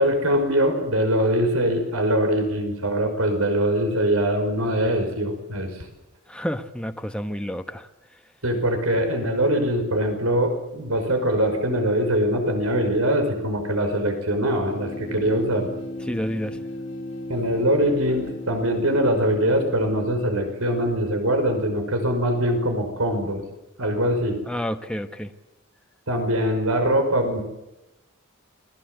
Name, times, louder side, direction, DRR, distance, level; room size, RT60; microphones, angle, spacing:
voice 1, 0.0-5.8 8.4-15.7 17.3-23.4 23.8-24.4 26.1-27.4, equal, 90° right, 5.5 m, -22 dB
voice 2, 6.3-7.9 16.1-16.6 24.5-25.3, equal, 5° left, 1.1 m, -29 dB
sound 1, 14.4-21.1, left 1 dB, 65° left, 2.3 m, -36 dB
29.0 x 21.5 x 8.0 m
head